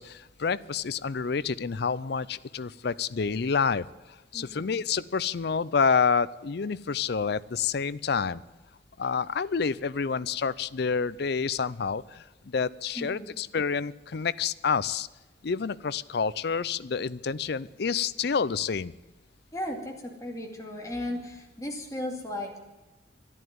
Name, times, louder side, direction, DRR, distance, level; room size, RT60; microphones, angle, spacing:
voice 1, 0.0-3.9 4.3-8.4 9.0-15.1 15.4-18.9, left 5 dB, 55° left, 18 dB, 0.5 m, -28 dB
voice 2, 4.3-4.7 13.0-13.3 19.5-22.6, left 1 dB, 15° left, 1 dB, 2.4 m, -36 dB
12.0 x 11.0 x 9.4 m, 1.1 s
head